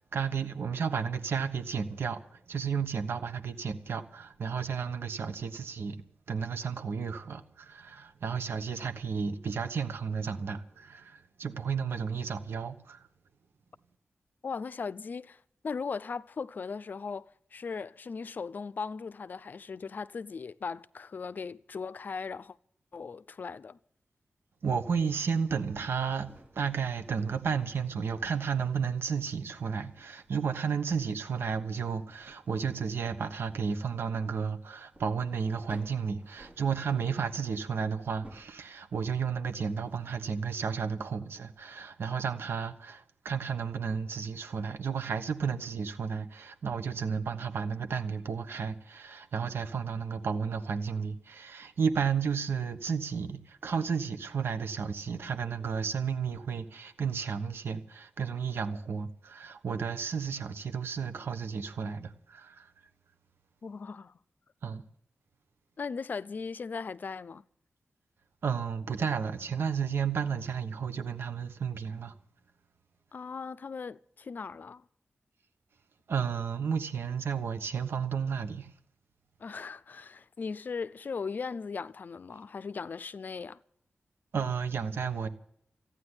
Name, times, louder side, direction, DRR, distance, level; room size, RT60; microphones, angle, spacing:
voice 1, 0.0-6.0 6.3-13.1 24.6-26.3 26.5-62.7 64.6-64.8 68.4-72.1 76.1-78.7 84.3-85.3, right 6 dB, 80° right, 1.2 m, -32 dB
voice 2, 14.4-22.6 22.9-23.8 63.6-64.2 65.8-67.4 73.1-74.8 79.4-83.6, left 5 dB, 50° left, 0.5 m, -38 dB
sound 1, 26.2-40.1, right 1 dB, 30° right, 3.2 m, -59 dB
14.5 x 9.6 x 9.7 m
wide cardioid pair, 140°, 4 cm